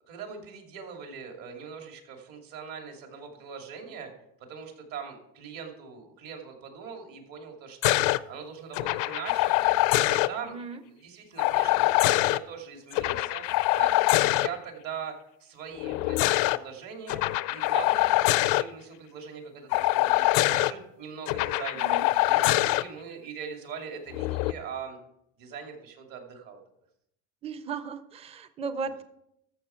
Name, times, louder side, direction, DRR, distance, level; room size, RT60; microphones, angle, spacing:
voice 1, 0.1-4.1 4.5-8.0 8.3-9.6 10.0-10.6 10.8-13.4 13.7-15.2 15.4-17.2 17.5-21.9 22.2-25.0 25.4-26.6, right 6 dB, 60° right, 3 dB, 2.6 m, -41 dB
sound 1, 7.8-8.2 8.7-10.3 11.4-12.4 12.9-14.5 15.8-16.6 17.1-18.6 19.7-20.7 21.3-22.8 24.1-24.5, left 19 dB, 80° left, 0.5 m, -24 dB
voice 2, 10.5-10.8 21.8-22.1 27.4-29.0, right 5 dB, 15° right, 12 dB, 0.5 m, -36 dB
13.5 x 6.6 x 4.4 m, 0.78 s
cardioid pair, 130°, 37 cm